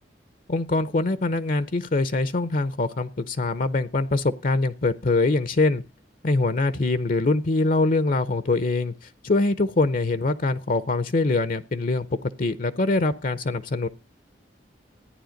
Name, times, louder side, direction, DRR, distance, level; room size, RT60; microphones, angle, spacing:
voice 1, 0.5-5.8 6.2-8.9 9.2-12.1 12.4-13.9, left 2 dB, 50° left, 0.7 m, -23 dB
14.5 x 9.9 x 5.1 m
head